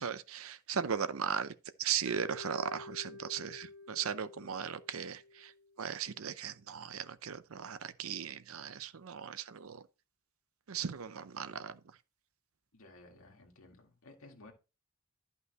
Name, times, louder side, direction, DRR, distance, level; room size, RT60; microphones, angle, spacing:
voice 1, 0.0-1.5 1.8-5.5 5.8-9.8 10.7-11.8, right 7 dB, 75° right, 0.6 m, -37 dB
Mallet percussion, 2.1-6.2, left 1 dB, 55° right, 1.4 m, -51 dB
voice 2, 12.7-14.5, left 2 dB, 75° left, 1.9 m, -56 dB
11.5 x 5.5 x 3.0 m
head